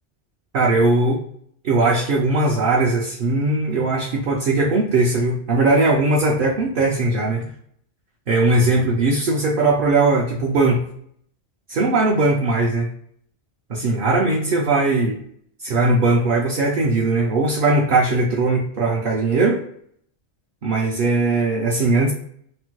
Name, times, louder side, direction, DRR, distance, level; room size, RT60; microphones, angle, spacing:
voice 1, 0.5-1.2 1.6-7.5 8.3-10.8 11.7-12.9 13.7-15.2 15.6-19.6 20.6-22.1, right 2 dB, 60° right, -1 dB, 0.6 m, -19 dB
3.3 x 2.1 x 2.9 m, 0.65 s
omnidirectional pair, 1.2 m